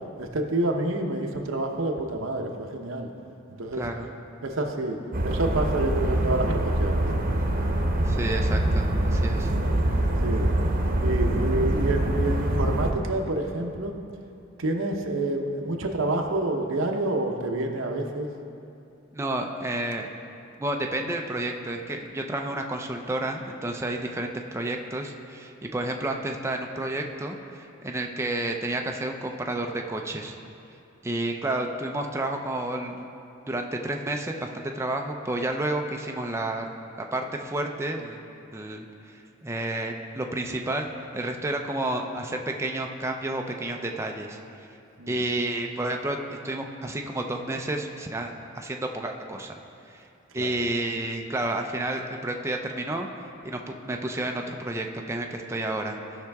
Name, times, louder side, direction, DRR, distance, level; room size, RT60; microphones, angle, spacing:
voice 1, 0.2-3.1 3.5-3.9 4.4-7.2 10.2-10.5 11.0-13.9 14.6-18.3 45.0-45.2 50.4-50.5, right 2 dB, 85° right, 3 dB, 0.9 m, -28 dB
sound 1, 5.1-12.9, right 1 dB, 45° right, 0.9 m, -24 dB
voice 2, 8.0-9.5 19.1-20.1 20.6-30.4 31.0-33.1 33.5-36.7 37.1-38.2 38.5-38.9 39.1-40.9 41.1-44.4 45.1-49.5 49.9-50.0 50.3-53.1 53.4-56.0, right 1 dB, 15° right, 2 dB, 0.5 m, -30 dB
16.5 x 5.8 x 3.5 m, 2.6 s
head